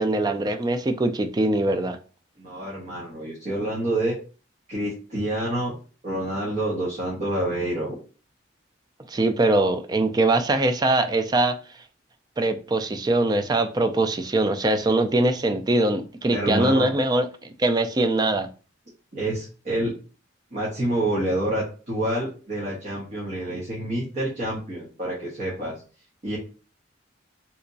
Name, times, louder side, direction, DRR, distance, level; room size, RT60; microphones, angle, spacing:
voice 1, 0.0-2.0 9.1-11.6 12.4-18.5, right 2 dB, 20° right, 0.3 m, -22 dB
voice 2, 2.4-4.2 4.7-5.8 6.0-8.0 16.3-16.9 19.1-19.9 20.5-25.7 26.2-26.4, right 1 dB, 40° right, 1.2 m, -27 dB
3.4 x 2.9 x 2.6 m
head